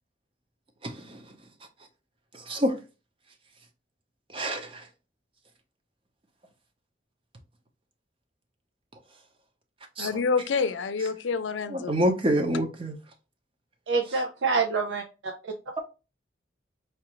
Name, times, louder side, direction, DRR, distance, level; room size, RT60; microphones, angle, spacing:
voice 1, 0.8-1.2 2.3-2.8 4.3-4.8 10.0-10.1 11.7-13.0, equal, 30° right, 0.7 m, -27 dB
voice 2, 10.0-12.0, left 5 dB, 80° left, 0.5 m, -27 dB
voice 3, 13.9-15.5, right 4 dB, 80° right, 0.6 m, -27 dB
4.6 x 2.5 x 2.9 m
head